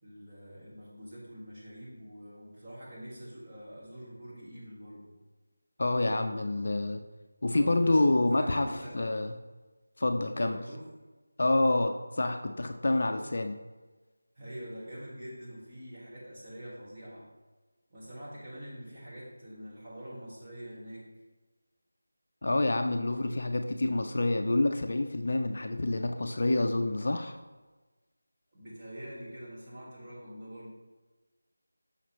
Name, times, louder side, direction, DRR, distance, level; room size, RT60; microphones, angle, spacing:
voice 1, 0.0-5.1 7.5-8.9 10.3-10.9 13.0-13.3 14.4-17.3 17.9-21.0 28.5-30.7, equal, 20° right, -10 dB, 1.9 m, -45 dB
voice 2, 5.8-7.0 7.4-9.3 10.0-10.6 11.4-13.5 22.4-27.4, left 2 dB, 55° left, 6 dB, 0.4 m, -27 dB
6.3 x 5.8 x 3.1 m, 1.2 s
figure-of-eight pair, 170°, 0 cm